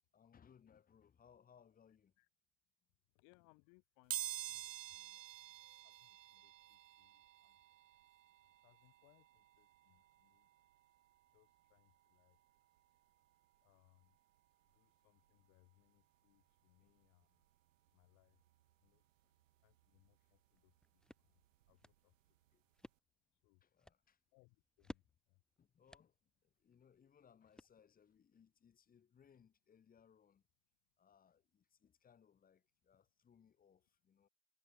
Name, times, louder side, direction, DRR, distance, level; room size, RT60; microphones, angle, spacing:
voice 1, 0.1-2.1 16.8-17.0 20.2-20.3 22.5-22.6 23.6-24.2 25.6-26.1 26.4-30.4 31.0-34.3, left 7 dB, 20° left, 3.5 m, -68 dB
voice 2, 1.9-2.3 3.1-7.6 8.6-10.5 11.3-12.4 13.6-14.2 14.7-17.4 17.9-18.4 18.8-19.0 19.6-22.2 23.3-23.6 24.3-25.4, left 34 dB, 40° left, 1.8 m, -74 dB
sound 1, 4.1-14.8 15.2-15.3 16.5-16.6 16.9-19.0 19.3-21.9 22.3-22.5 22.8-22.9, right 14 dB, 65° right, 0.5 m, -51 dB
sound 2, 20.6-28.2, left 1 dB, ahead, 1.6 m, -61 dB
figure-of-eight pair, 85°, 43 cm